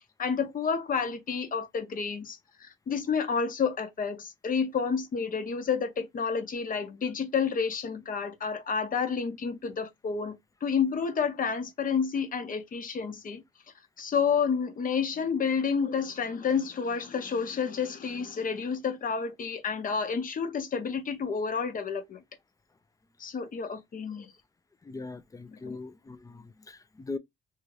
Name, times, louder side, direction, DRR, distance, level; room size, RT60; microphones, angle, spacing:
voice 1, 0.2-10.4 10.6-13.4 14.0-22.2 23.2-24.3 25.7-25.8, left 6 dB, 45° left, 0.8 m, -30 dB
voice 2, 24.8-27.2, left 3 dB, 15° left, 0.4 m, -40 dB
2.7 x 2.5 x 3.1 m
cardioid pair, 90°, 20 cm